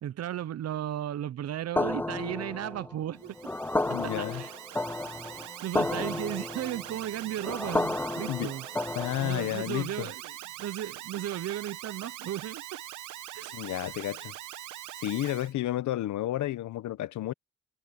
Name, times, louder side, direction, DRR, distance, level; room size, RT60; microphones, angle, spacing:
voice 1, 0.0-3.4 4.0-4.6 5.3-8.7 9.2-12.8 13.3-13.5, right 11 dB, 55° right, 0.7 m, -35 dB
sound 1, 1.8-9.6, left 2 dB, 5° left, 0.4 m, -32 dB
Alarm, 3.2-15.5, right 14 dB, 80° right, 1.1 m, -43 dB
voice 2, 3.8-4.4 8.3-8.5 8.9-10.1 13.5-14.3 15.0-17.3, left 14 dB, 75° left, 1.0 m, -31 dB
cardioid pair, 90°, 30 cm